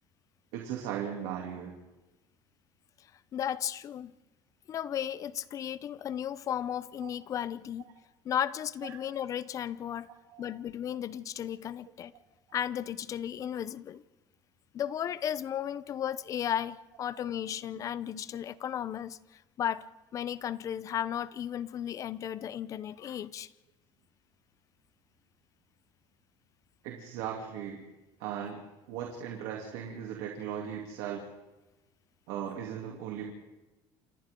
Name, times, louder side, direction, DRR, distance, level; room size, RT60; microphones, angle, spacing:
voice 1, 0.5-1.7 7.0-7.1 8.8-8.9 10.1-10.5 17.7-17.8 18.1-18.2 26.8-27.8 28.2-28.6 28.9-31.2 32.3-33.3, right 9 dB, 85° right, -1 dB, 3.1 m, -38 dB
voice 2, 3.3-4.1 4.7-7.9 8.2-10.1 10.4-12.1 12.5-14.0 14.7-19.9 20.1-23.5, left 10 dB, 40° left, 17 dB, 0.8 m, -34 dB
28.5 x 28.0 x 3.9 m, 1.1 s
cardioid pair, 130°, 8 cm